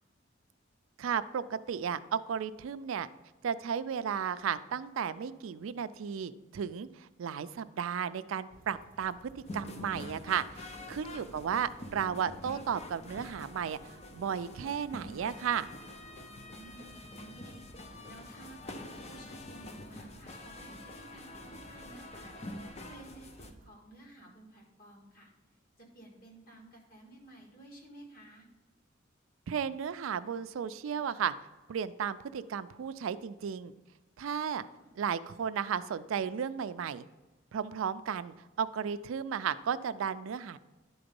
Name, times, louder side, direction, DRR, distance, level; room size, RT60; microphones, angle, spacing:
voice 1, 1.0-3.1 3.4-15.7 29.5-31.3 31.7-33.7 34.2-34.7 35.0-37.1 37.5-40.6, right 7 dB, 85° right, 13 dB, 0.4 m, -34 dB
sound 1, 8.5-23.7, right 1 dB, 45° right, 0.7 m, -57 dB
sound 2, 9.5-23.5, left 1 dB, 35° left, 0.6 m, -46 dB
voice 2, 16.3-25.3 25.8-28.5 34.5-34.9, right 2 dB, 50° left, -1 dB, 1.9 m, -54 dB
11.0 x 3.9 x 5.2 m, 1.2 s
head